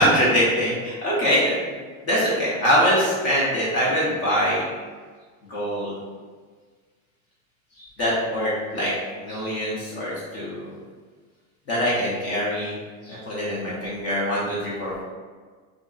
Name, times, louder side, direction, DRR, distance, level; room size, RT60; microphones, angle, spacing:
voice 1, 0.0-1.6 2.0-4.6 5.5-6.0 8.0-8.9 9.2-10.8 11.7-12.7 13.0-15.0, equal, 35° left, -7 dB, 0.7 m, -23 dB
2.6 x 2.5 x 2.3 m, 1.5 s
supercardioid pair, 125°, 42 cm